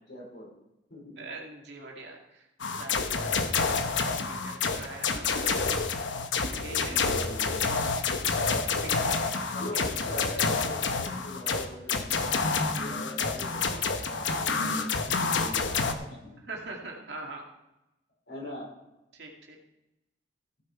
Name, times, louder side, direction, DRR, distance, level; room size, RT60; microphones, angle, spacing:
voice 1, 0.1-0.5 0.9-1.3 3.2-3.8 6.7-7.7 9.4-16.4 18.3-18.7, left 1 dB, 65° left, -2 dB, 4.7 m, -43 dB
voice 2, 1.2-2.5 2.8-3.8 4.1-6.0 6.5-7.0 7.6-8.3 8.8-9.5 9.7-9.9 16.5-17.5 19.1-19.6, right 2 dB, 65° right, 0 dB, 2.4 m, -43 dB
sound 1, 2.6-15.9, left 4 dB, 80° left, 1.0 m, -28 dB
15.5 x 6.9 x 4.6 m, 0.91 s
head